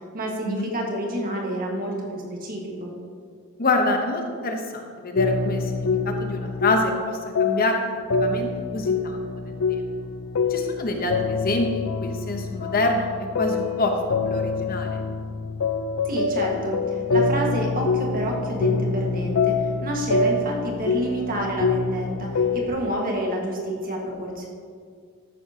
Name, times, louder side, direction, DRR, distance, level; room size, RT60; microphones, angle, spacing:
voice 1, 0.1-2.9 16.0-24.5, right 1 dB, 40° right, -1 dB, 1.7 m, -29 dB
voice 2, 3.6-7.8 8.1-9.8 10.5-13.9 14.2-15.0, left 2 dB, 40° left, 3 dB, 1.0 m, -26 dB
sound 1, 5.1-7.1 7.3-22.7, left 4 dB, 65° left, 0.5 m, -25 dB
13.0 x 10.0 x 2.9 m, 2.1 s
head